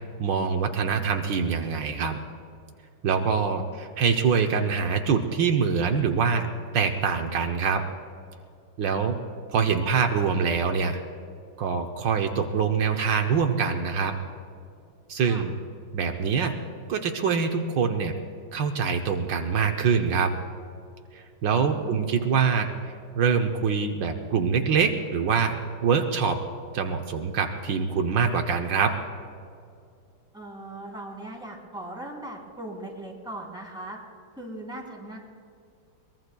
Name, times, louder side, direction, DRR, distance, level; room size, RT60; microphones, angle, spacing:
voice 1, 0.2-2.2 3.0-6.5 6.7-7.8 8.8-9.2 9.5-11.0 11.6-14.2 15.1-15.5 15.9-16.5 16.9-18.1 18.5-20.3 21.1-25.6 25.8-26.4 26.7-29.0, right 6 dB, 75° right, 4 dB, 1.6 m, -24 dB
voice 2, 21.5-22.1 30.3-34.0 34.4-35.2, right 1 dB, ahead, -2 dB, 3.0 m, -39 dB
22.5 x 21.0 x 2.3 m, 2.4 s
omnidirectional pair, 2.1 m